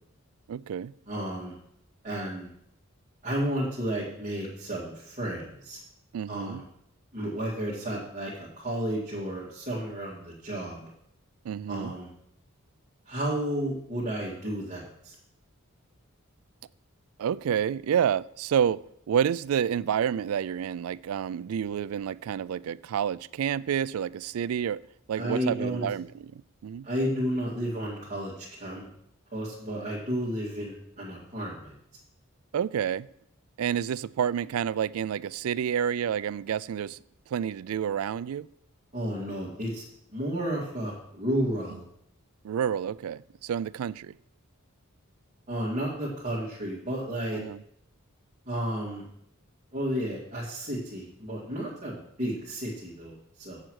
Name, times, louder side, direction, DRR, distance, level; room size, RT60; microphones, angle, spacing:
voice 1, 0.5-0.9 6.1-6.6 11.4-12.0 17.2-24.8 25.1-26.9 32.5-33.1 33.6-37.0 37.3-38.5 42.4-44.1 47.3-47.6, right 8 dB, 85° right, 0.3 m, -29 dB
voice 2, 1.1-1.5 2.0-2.5 3.2-5.8 6.3-6.6 7.1-10.9 11.7-12.1 13.1-15.1 25.1-25.8 26.8-28.9 29.3-31.7 38.9-39.9 40.1-41.8 45.5-47.4 48.5-49.0 49.7-53.6, equal, 35° right, 2.2 m, -32 dB
7.6 x 7.5 x 6.3 m
head